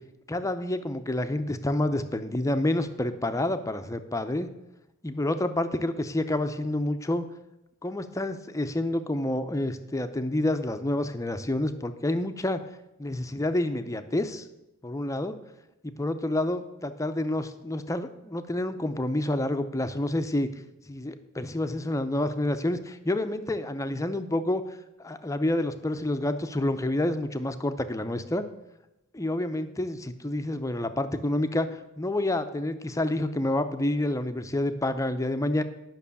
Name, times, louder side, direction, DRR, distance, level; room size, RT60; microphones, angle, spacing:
voice 1, 0.3-4.5 5.0-7.3 7.8-12.6 13.0-14.5 14.8-15.4 15.8-20.5 20.9-28.5 29.1-35.6, left 1 dB, 15° left, 10 dB, 0.6 m, -28 dB
11.0 x 6.1 x 7.0 m, 0.92 s
head